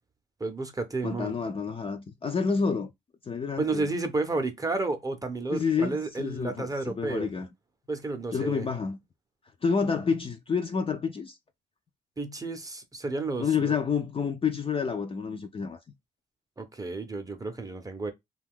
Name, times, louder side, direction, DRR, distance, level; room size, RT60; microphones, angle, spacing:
voice 1, 0.4-1.3 3.6-7.3 7.9-8.7 12.2-13.8 16.6-18.1, right 3 dB, 15° right, 0.6 m, -31 dB
voice 2, 1.0-2.9 3.3-3.9 5.5-7.5 8.3-9.0 9.6-11.4 13.4-15.8, left 5 dB, 30° left, 0.4 m, -29 dB
2.6 x 2.3 x 3.5 m
cardioid pair, 90°, 20 cm